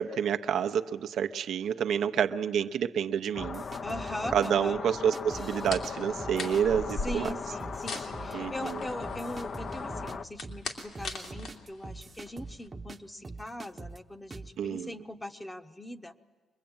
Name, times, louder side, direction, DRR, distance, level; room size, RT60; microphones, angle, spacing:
voice 1, 0.0-3.6 4.3-7.3 8.3-8.8 14.6-14.9, right 8 dB, 70° right, 8 dB, 0.7 m, -28 dB
sound 1, 3.3-10.2, left 5 dB, 45° left, 0.7 m, -38 dB
sound 2, 3.4-4.5 5.1-5.9 6.2-7.3 7.6-8.3 8.7-8.8 9.0-13.0 13.2-14.0 14.3-14.5, right 3 dB, 25° right, 0.9 m, -43 dB
voice 2, 3.8-4.8 7.0-16.1, left 1 dB, 15° left, 9 dB, 1.0 m, -40 dB
sound 3, 5.3-12.7, left 3 dB, 70° left, 2.7 m, -41 dB
23.5 x 21.5 x 8.9 m, 1.4 s
cardioid pair, 90°, 0 cm